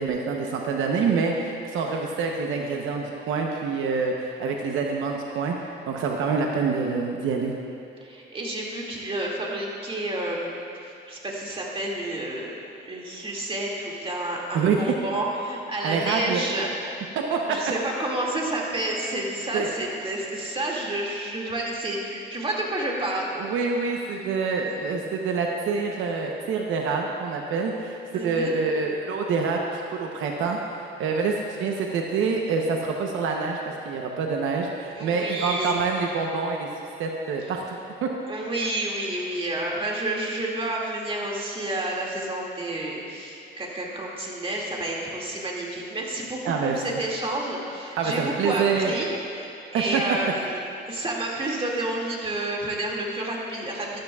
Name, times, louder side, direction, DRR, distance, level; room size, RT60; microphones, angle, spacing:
voice 1, 0.0-7.6 14.5-14.8 15.8-16.4 17.2-17.6 19.5-19.7 23.3-30.6 31.0-33.6 33.9-36.7 37.0-38.1 46.4-46.8 48.0-48.9 49.9-50.0, right 5 dB, 85° right, 1 dB, 0.9 m, -26 dB
voice 2, 8.0-16.7 17.5-23.3 24.2-24.3 24.6-24.7 28.1-28.6 35.0-35.8 38.3-49.1 49.3-49.5 49.7-54.0, right 1 dB, 25° right, -3 dB, 2.3 m, -30 dB
13.0 x 13.0 x 2.4 m, 2.6 s
cardioid pair, 90°, 20 cm